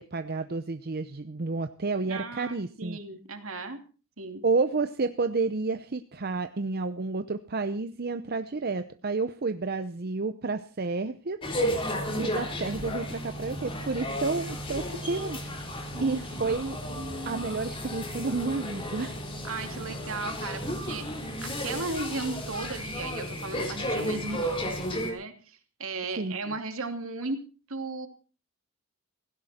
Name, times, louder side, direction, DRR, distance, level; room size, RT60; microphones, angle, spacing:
voice 1, 0.0-3.0 4.4-15.7 16.0-16.8 17.2-19.2 26.2-26.4, right 3 dB, 45° right, 9 dB, 0.7 m, -30 dB
voice 2, 2.1-3.8 4.2-4.4 15.9-17.7 19.4-27.4 27.7-28.1, right 3 dB, 75° right, 6 dB, 2.7 m, -36 dB
sound 1, 11.4-25.1, equal, 25° left, 3.8 m, -33 dB
17.5 x 16.5 x 4.3 m, 0.37 s
head